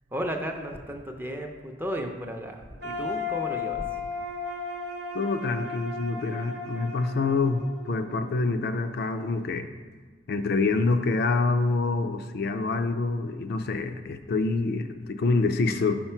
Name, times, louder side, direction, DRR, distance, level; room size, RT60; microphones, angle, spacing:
voice 1, 0.1-3.8, equal, 10° right, 3 dB, 0.5 m, -34 dB
sound 1, 2.8-8.7, left 4 dB, 60° right, 0.8 m, -35 dB
voice 2, 5.1-9.7 10.3-16.0, left 3 dB, 55° left, 8 dB, 0.4 m, -26 dB
5.8 x 4.9 x 4.4 m, 1.5 s
head